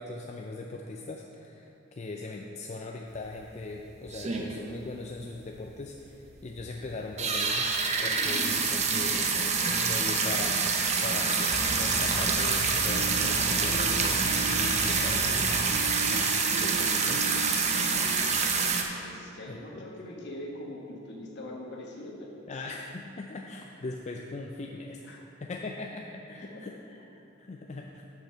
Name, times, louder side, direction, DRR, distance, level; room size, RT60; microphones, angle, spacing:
voice 1, 0.0-7.7 8.0-10.7 11.0-15.7 16.0-17.2 19.5-19.9 22.5-25.0 25.4-27.0 27.4-28.0, left 3 dB, 35° left, 1 dB, 0.4 m, -40 dB
sound 1, 3.1-3.2 3.6-3.7 4.1-4.8 5.1-5.2 5.4-5.5 5.9-6.0 6.5-6.7 7.1-18.8, right 5 dB, 35° right, 0.7 m, -27 dB
sound 2, 11.2-16.4, equal, 15° left, 2.0 m, -37 dB
sound 3, 12.9-19.6, right 4 dB, 75° right, 0.3 m, -42 dB
voice 2, 19.0-22.3 25.0-25.2 26.5-26.6, left 1 dB, 60° left, -1 dB, 1.4 m, -42 dB
7.2 x 5.8 x 6.6 m, 2.8 s
head